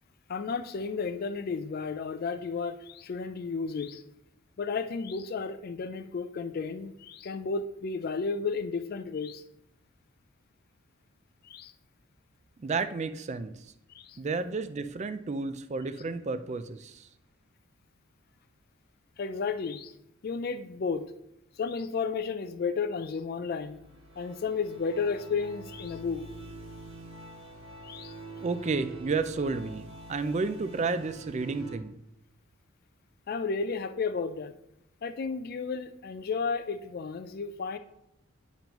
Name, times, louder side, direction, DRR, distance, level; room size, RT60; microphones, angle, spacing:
voice 1, 0.3-4.0 4.6-9.4 11.4-11.7 13.9-14.2 19.2-19.9 20.2-21.1 21.6-23.8 24.2-26.2 27.8-28.1 33.3-34.5 35.0-37.8, left 5 dB, 45° left, 10 dB, 0.3 m, -33 dB
voice 2, 12.6-13.5 14.2-17.1 28.4-31.9, right 4 dB, 30° right, 12 dB, 0.3 m, -31 dB
sound 1, 23.5-31.8, right 2 dB, 65° right, 1.5 m, -45 dB
9.0 x 5.3 x 3.0 m, 0.82 s
head